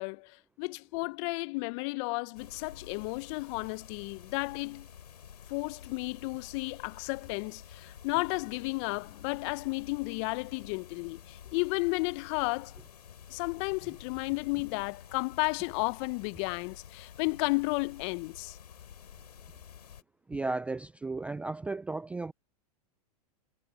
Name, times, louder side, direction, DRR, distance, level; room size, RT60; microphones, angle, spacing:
voice 1, 0.0-4.9 5.5-12.7 13.3-18.6, left 29 dB, 50° left, 1.0 m, -33 dB
sound 1, 2.3-20.0, left 8 dB, 80° left, 4.7 m, -51 dB
voice 2, 20.3-22.3, right 3 dB, 5° right, 0.3 m, -34 dB
hypercardioid pair, 100°, 20 cm